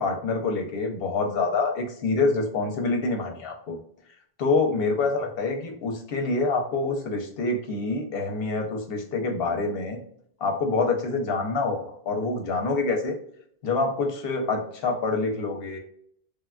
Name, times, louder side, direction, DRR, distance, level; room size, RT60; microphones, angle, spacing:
voice 1, 0.0-3.8 4.4-10.0 10.4-13.2 13.6-15.8, left 3 dB, 70° left, 3 dB, 0.9 m, -26 dB
3.4 x 2.2 x 2.3 m, 0.67 s
omnidirectional pair, 1.1 m